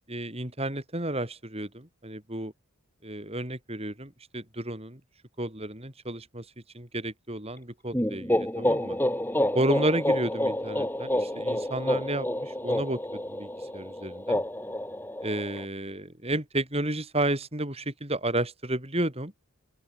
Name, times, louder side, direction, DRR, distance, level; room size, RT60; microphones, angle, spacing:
voice 1, 0.1-2.5 3.0-5.0 5.4-6.5 6.7-9.0 9.5-14.4 15.2-19.3, right 1 dB, 25° right, 4.3 m, -32 dB
sound 1, 7.9-15.6, left 1 dB, 10° left, 4.2 m, -29 dB
open air
head